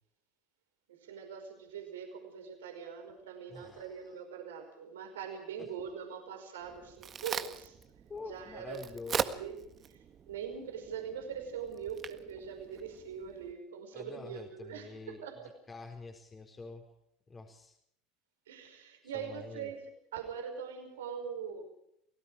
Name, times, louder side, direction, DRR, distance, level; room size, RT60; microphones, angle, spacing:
voice 1, 0.9-7.8 8.3-8.8 9.1-9.5 9.9-15.5 18.5-21.7, right 7 dB, 80° right, 4 dB, 5.2 m, -42 dB
voice 2, 3.5-4.2 5.6-5.7 8.1-9.4 13.9-15.2 15.7-16.9 17.3-17.8 19.0-19.7, left 4 dB, 25° left, 3 dB, 4.3 m, -46 dB
Crack, 6.6-13.5, right 7 dB, 40° right, 1.7 m, -41 dB
29.0 x 18.5 x 4.9 m, 0.77 s
hypercardioid pair, 80°, 0 cm